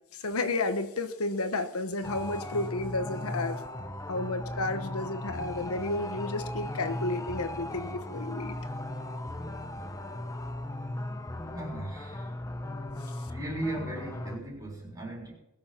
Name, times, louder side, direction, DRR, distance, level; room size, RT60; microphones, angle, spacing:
voice 1, 0.1-3.6 4.1-8.5, left 2 dB, 75° left, 9 dB, 1.1 m, -32 dB
sound 1, 2.0-14.4, left 1 dB, 15° left, 0.7 m, -37 dB
voice 2, 11.5-12.3 13.3-15.3, right 1 dB, 15° right, -3 dB, 4.0 m, -37 dB
20.5 x 7.5 x 5.9 m, 0.88 s
head